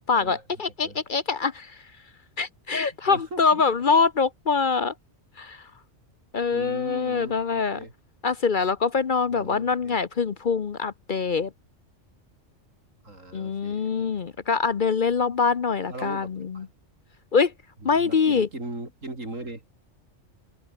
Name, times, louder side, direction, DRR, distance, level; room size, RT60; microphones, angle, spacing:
voice 1, 0.0-1.8 2.4-4.9 5.4-5.7 6.3-7.8 8.2-11.5 13.3-16.7 17.3-17.5 17.8-18.5, left 5 dB, 45° left, 0.9 m, -24 dB
voice 2, 3.0-3.6 6.5-7.9 9.3-10.0 13.0-14.2 15.9-16.7 17.8-19.6, right 2 dB, 85° right, 6.1 m, -39 dB
open air
omnidirectional pair, 1.3 m